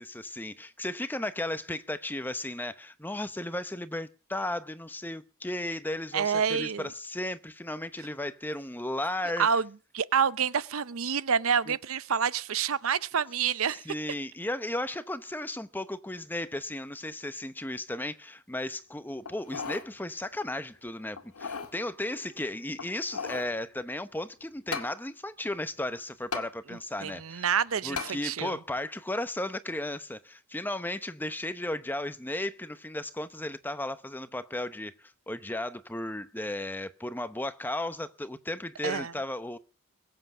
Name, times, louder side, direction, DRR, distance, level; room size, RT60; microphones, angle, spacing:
voice 1, 0.0-9.5 11.7-11.8 13.8-27.5 27.8-39.6, left 1 dB, 10° left, 0.8 m, -35 dB
voice 2, 6.1-6.9 9.4-9.7 9.9-13.9 27.0-28.6 38.8-39.1, right 7 dB, 70° right, 0.6 m, -28 dB
sound 1, 19.3-19.9 20.3-20.4 21.2-21.7 22.7-23.5 24.7-24.9 26.3-26.5 28.0-28.2 28.8-28.9, left 5 dB, 75° left, 2.0 m, -36 dB
22.0 x 7.9 x 6.1 m
head